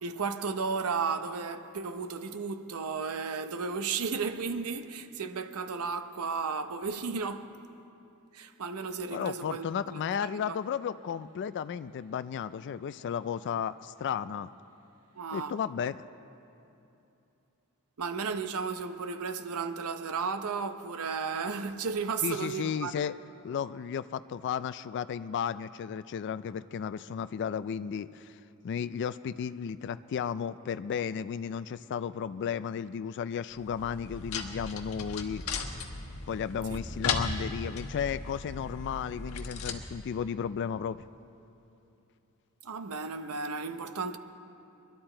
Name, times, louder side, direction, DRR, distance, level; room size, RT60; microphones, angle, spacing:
voice 1, 0.0-7.5 8.3-9.7 10.2-10.6 15.2-15.6 18.0-22.9 36.7-36.8 37.2-37.3 42.6-44.2, right 5 dB, 75° right, 0.7 m, -34 dB
voice 2, 9.1-14.5 15.3-16.1 22.2-23.1 23.4-28.4 28.6-35.6 36.3-41.0, left 7 dB, 55° left, 0.3 m, -34 dB
sound 1, 33.5-39.8, left 4 dB, 80° left, 1.2 m, -36 dB
22.0 x 12.0 x 4.4 m
head